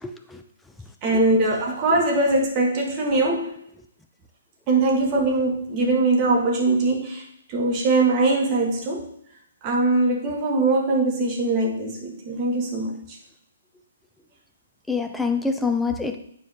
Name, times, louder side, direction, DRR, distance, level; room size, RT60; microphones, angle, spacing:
voice 1, 0.0-0.4 14.9-16.2, left 4 dB, 5° left, 0.7 m, -25 dB
voice 2, 1.0-3.5 4.7-9.1 9.6-13.2, right 2 dB, 35° right, 1.7 m, -22 dB
9.4 x 4.6 x 3.8 m
figure-of-eight pair, 130°, 0 cm